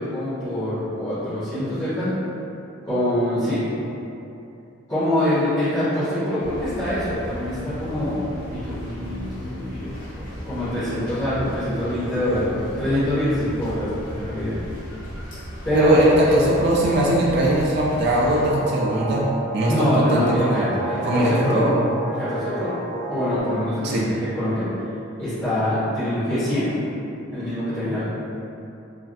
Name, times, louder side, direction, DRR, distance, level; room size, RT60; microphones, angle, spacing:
voice 1, 0.0-2.1 2.8-3.6 4.9-13.9 14.1-14.6 15.6-15.9 16.2-16.4 19.6-21.7 22.1-22.7 23.1-24.7 25.2-26.7 27.3-28.0, left 1 dB, 15° left, -19 dB, 1.1 m, -24 dB
sound 1, 6.4-18.4, equal, 40° left, 0.7 m, -36 dB
voice 2, 15.7-19.2 19.5-20.7 21.0-21.7 23.8-24.0, right 1 dB, 50° right, -5 dB, 0.4 m, -20 dB
sound 2, 18.3-23.4, right 1 dB, 80° left, 1.1 m, -31 dB
3.3 x 2.5 x 2.3 m, 2.8 s
head